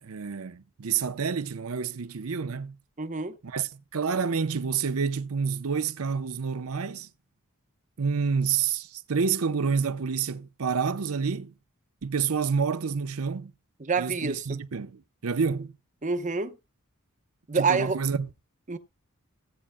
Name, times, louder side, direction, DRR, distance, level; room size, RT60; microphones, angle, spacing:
voice 1, 0.0-2.8 3.4-7.1 8.0-11.5 12.0-13.5 14.0-15.7 17.5-18.3, right 6 dB, 75° right, 0.7 m, -28 dB
voice 2, 3.0-3.4 13.8-14.6 16.0-16.6 17.5-18.0 18.7-18.8, right 4 dB, 35° right, 0.8 m, -27 dB
16.0 x 8.7 x 2.2 m
head